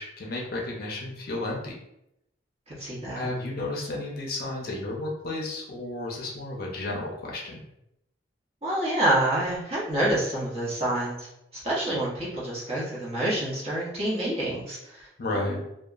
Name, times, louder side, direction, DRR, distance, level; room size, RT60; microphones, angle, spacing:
voice 1, 0.0-1.7 3.1-7.7 15.2-15.6, left 2 dB, 55° left, -2 dB, 0.6 m, -32 dB
voice 2, 2.7-3.3 8.6-15.6, right 1 dB, 35° right, -7 dB, 0.9 m, -28 dB
2.8 x 2.2 x 2.3 m, 0.82 s
head